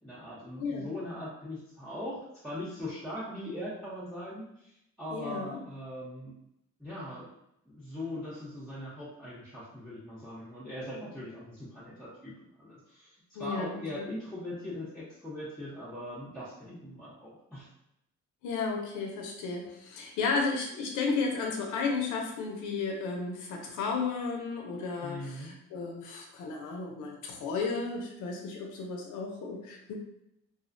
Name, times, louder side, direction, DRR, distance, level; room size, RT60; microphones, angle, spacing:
voice 1, 0.0-4.7 5.0-6.3 6.8-7.3 7.7-12.3 12.6-17.7 25.0-25.5, left 1 dB, ahead, -10 dB, 0.7 m, -40 dB
voice 2, 5.1-5.6 13.4-14.1 18.4-29.9, left 4 dB, 85° left, 1 dB, 0.5 m, -33 dB
2.5 x 2.1 x 2.5 m, 0.79 s
cardioid pair, 90°, 30 cm